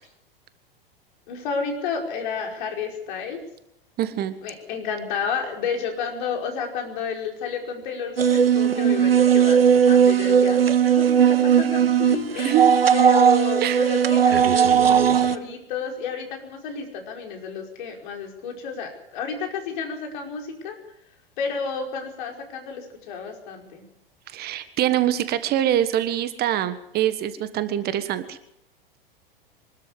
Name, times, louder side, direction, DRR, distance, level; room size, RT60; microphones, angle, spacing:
voice 1, 1.3-3.4 4.4-10.6 10.8-12.6 12.9-20.8 21.4-23.9, left 6 dB, 55° left, 3 dB, 5.1 m, -31 dB
voice 2, 4.0-4.3 12.4-12.7 13.6-13.8 24.3-28.4, right 12 dB, 35° right, 13 dB, 1.4 m, -24 dB
sound 1, 8.2-15.4, right 8 dB, 80° right, 1.1 m, -18 dB
24.0 x 13.0 x 8.2 m, 0.79 s
figure-of-eight pair, 90°, 29 cm